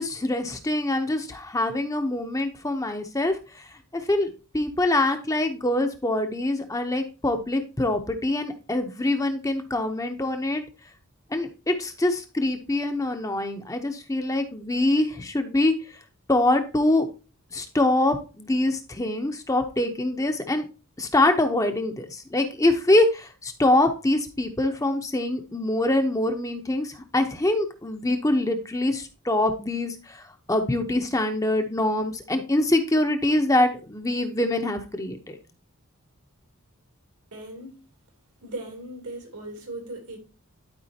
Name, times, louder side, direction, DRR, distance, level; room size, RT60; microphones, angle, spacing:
voice 1, 0.0-3.7 3.9-10.6 11.3-16.0 16.3-17.1 17.5-20.7 21.0-35.4, left 1 dB, 15° left, 0.7 m, -24 dB
voice 2, 37.3-37.8 38.4-40.2, right 2 dB, 85° right, 3.0 m, -38 dB
12.0 x 4.9 x 2.8 m
head